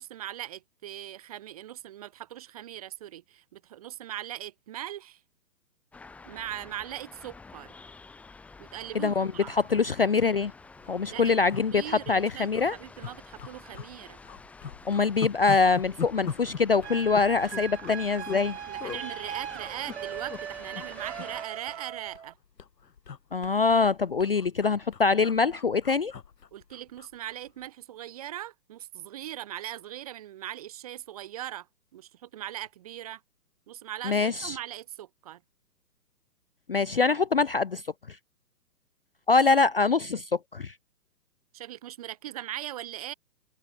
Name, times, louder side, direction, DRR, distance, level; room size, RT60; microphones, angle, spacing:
voice 1, 0.0-5.2 6.2-7.7 8.6-9.6 11.1-11.4 11.7-14.2 18.6-22.4 26.5-31.7 31.9-33.2 33.7-35.4 41.5-43.1, right 12 dB, 25° right, 1.2 m, -40 dB
sound 1, 5.9-21.4, left 4 dB, 5° left, 1.6 m, -49 dB
voice 2, 9.0-10.5 10.9-12.8 14.9-18.6 23.3-26.1 34.1-34.6 36.7-37.8 39.3-40.7, left 4 dB, 35° left, 0.5 m, -24 dB
sound 2, 10.8-11.0 11.5-12.2 12.5-12.7 13.0-13.9 14.2-18.5 18.8-19.0 19.6-20.4 20.7-20.9 21.2-22.3 22.6-27.1 27.5-27.7, left 6 dB, 85° left, 3.1 m, -40 dB
sound 3, 16.8-22.3, right 9 dB, 45° right, 0.9 m, -39 dB
hypercardioid pair, 165°, 49 cm